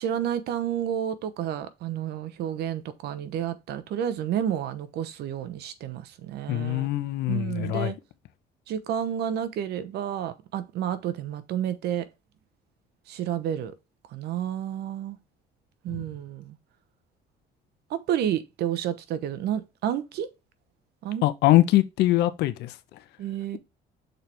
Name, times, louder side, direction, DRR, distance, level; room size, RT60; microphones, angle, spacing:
voice 1, 0.0-6.9 7.3-8.0 8.7-12.1 13.1-13.7 14.1-15.2 15.8-16.6 17.9-20.3 21.0-21.3 23.2-23.6, right 10 dB, 75° right, 1.0 m, -30 dB
voice 2, 6.5-7.9 15.9-16.0 21.2-22.7, left 15 dB, 80° left, 0.8 m, -23 dB
6.5 x 4.5 x 3.4 m
cardioid pair, 110°, 17 cm